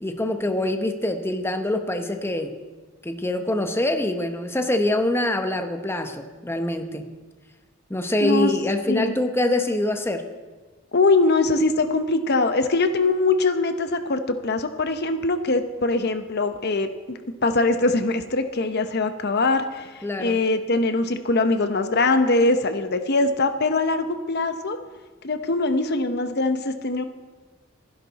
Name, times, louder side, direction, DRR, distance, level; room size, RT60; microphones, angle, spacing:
voice 1, 0.0-2.5 3.0-7.1 7.9-10.2 20.0-20.4, left 1 dB, 10° left, 6 dB, 1.0 m, -24 dB
voice 2, 8.2-8.5 8.9-9.2 10.9-24.8 25.2-27.0, left 3 dB, 55° left, 9 dB, 0.9 m, -22 dB
27.5 x 10.5 x 4.1 m, 1.3 s
head